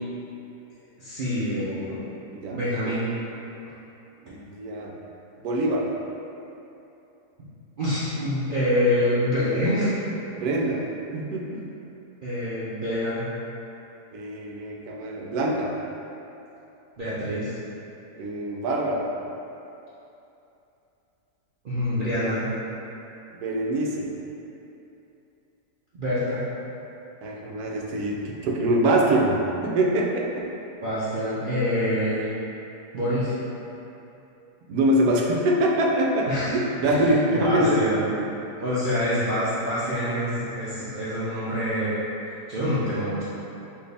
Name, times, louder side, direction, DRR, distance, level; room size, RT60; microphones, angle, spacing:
voice 1, 1.0-2.1 2.5-3.1 7.8-9.9 12.2-13.3 17.0-17.5 21.6-22.5 25.9-26.5 30.8-32.3 32.9-33.3 36.3-36.6 36.8-38.2 38.6-42.0 42.5-43.2, equal, 60° right, -11 dB, 0.5 m, -26 dB
voice 2, 2.3-2.9 4.2-4.9 5.4-5.9 10.3-11.6 14.1-15.7 18.2-19.1 23.4-24.1 27.2-30.5 34.7-38.0, right 1 dB, 75° right, -1 dB, 1.0 m, -24 dB
4.5 x 2.7 x 3.3 m, 2.9 s
omnidirectional pair, 1.7 m